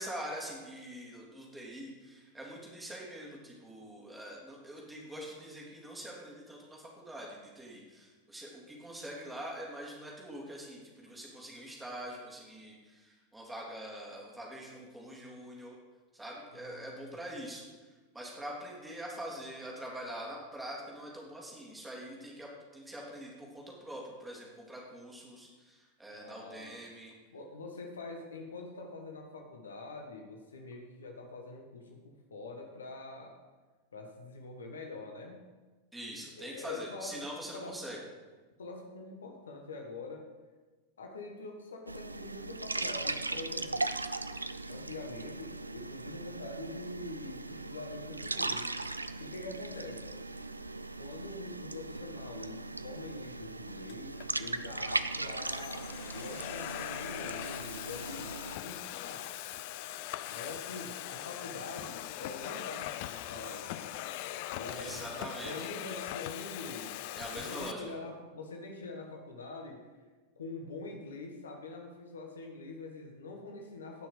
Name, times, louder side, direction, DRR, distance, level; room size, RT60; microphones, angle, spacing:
voice 1, 0.0-15.7 16.1-17.6 18.1-27.1 35.9-38.0 64.7-65.7 67.1-67.8, right 1 dB, 10° right, -3 dB, 3.3 m, -44 dB
voice 2, 16.5-17.2 26.1-26.8 27.3-33.4 33.9-35.4 36.4-37.8 38.6-40.2 41.0-43.9 44.7-48.7 49.2-50.2 51.0-59.3 60.3-64.0 64.5-69.9 70.4-74.1, left 3 dB, 70° left, 3 dB, 1.6 m, -45 dB
sound 1, 41.9-58.6, right 2 dB, 80° right, 0.4 m, -38 dB
Domestic sounds home sounds, 53.9-54.3 55.0-67.7, left 14 dB, 50° left, 0.5 m, -41 dB
18.0 x 6.2 x 5.0 m, 1.3 s
figure-of-eight pair, 90°, 0 cm